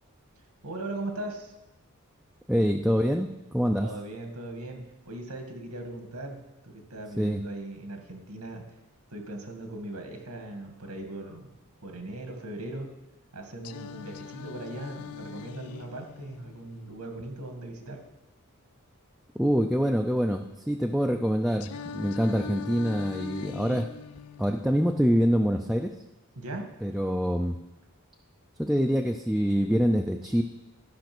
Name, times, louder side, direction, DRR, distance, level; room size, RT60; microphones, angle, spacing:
voice 1, 0.6-1.5 3.8-6.4 6.6-8.6 9.1-11.5 11.8-12.9 13.3-18.0 26.4-26.7, right 2 dB, 90° right, 4 dB, 1.9 m, -39 dB
voice 2, 2.5-3.9 7.2-7.4 19.4-23.9 24.4-25.9 26.8-27.6 28.6-30.4, equal, ahead, 3 dB, 0.4 m, -25 dB
Singing, 13.6-17.6 21.6-25.6, left 7 dB, 85° left, 0.5 m, -42 dB
13.0 x 5.8 x 6.1 m, 0.96 s
head